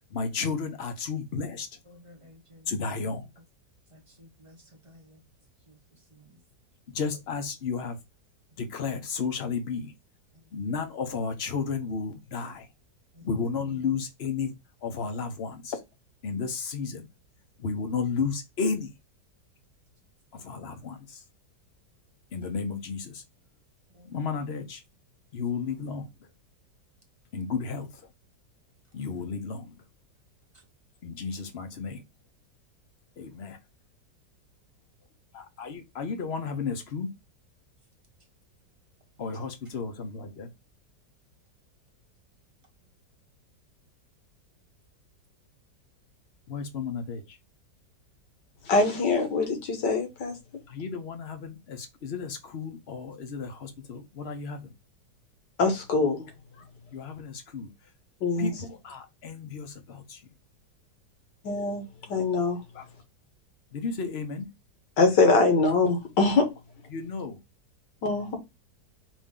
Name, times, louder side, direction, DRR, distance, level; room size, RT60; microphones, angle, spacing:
voice 1, 0.1-1.7 2.7-3.2 6.9-8.0 8.6-9.9 10.5-12.7 13.2-14.5 14.8-15.3 16.2-17.1 17.6-18.9 20.3-21.2 22.3-23.2 24.1-24.8 25.3-26.1 27.3-27.9 28.9-29.7 31.0-32.0 33.2-33.6 35.3-37.1 39.2-40.5 46.5-47.2 50.7-54.6 56.9-57.7 58.4-60.2 62.7-62.8 63.7-64.5 66.9-67.4, left 5 dB, 45° left, 0.9 m, -33 dB
voice 2, 1.9-2.7 3.9-5.2 5.7-5.8 6.1-6.4 10.3-10.4 13.1-13.3 23.9-24.1, left 1 dB, 25° right, 0.9 m, -54 dB
voice 3, 48.7-50.3 55.6-56.3 58.2-58.5 61.4-62.6 65.0-66.5 68.0-68.4, left 3 dB, 75° left, 1.9 m, -23 dB
5.1 x 2.7 x 3.6 m
omnidirectional pair, 1.9 m